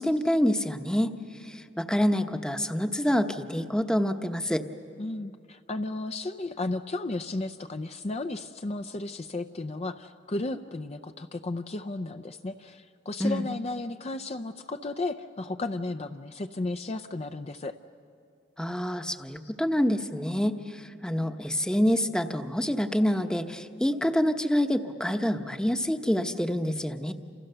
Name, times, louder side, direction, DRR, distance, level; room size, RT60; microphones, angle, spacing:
voice 1, 0.0-4.6 13.2-13.4 18.6-27.1, equal, 5° left, 7 dB, 0.9 m, -27 dB
voice 2, 5.0-17.8, left 2 dB, 35° left, 7 dB, 0.6 m, -34 dB
29.0 x 27.5 x 6.8 m, 2.4 s
head